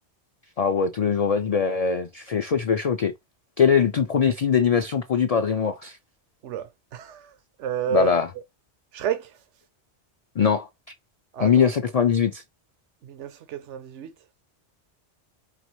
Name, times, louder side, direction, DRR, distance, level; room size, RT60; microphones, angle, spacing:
voice 1, 0.6-3.1 3.6-6.0 7.9-8.3 10.4-10.7 11.4-12.4, left 6 dB, 50° left, 0.4 m, -21 dB
voice 2, 6.4-7.3 7.6-8.2 8.9-9.4 11.3-11.5 13.0-14.1, right 9 dB, 85° right, 1.0 m, -30 dB
4.7 x 3.0 x 3.0 m
omnidirectional pair, 1.2 m